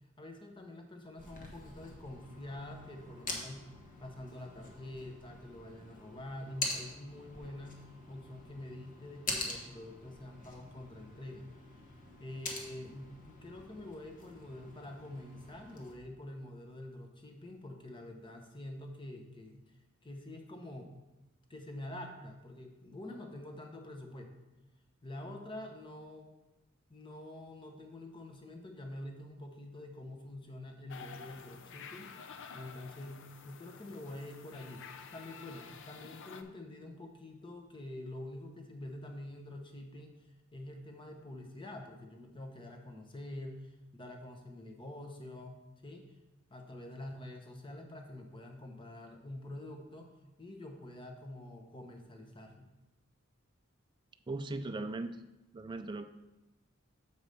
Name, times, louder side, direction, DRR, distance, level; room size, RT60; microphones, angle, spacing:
voice 1, 0.2-3.7 4.0-7.8 8.1-11.5 12.2-19.6 20.0-20.9 21.5-24.3 25.0-26.3 26.9-40.1 40.5-45.6 45.8-46.1 46.5-50.1 50.4-52.7, left 1 dB, 25° left, 4 dB, 0.9 m, -46 dB
sound 1, 1.2-15.9, left 3 dB, 40° left, 1.2 m, -45 dB
sound 2, 30.9-36.4, left 6 dB, 60° left, 0.5 m, -50 dB
voice 2, 54.3-55.2 55.5-56.0, right 2 dB, 20° right, 7 dB, 0.3 m, -38 dB
6.8 x 4.9 x 5.2 m, 0.99 s
head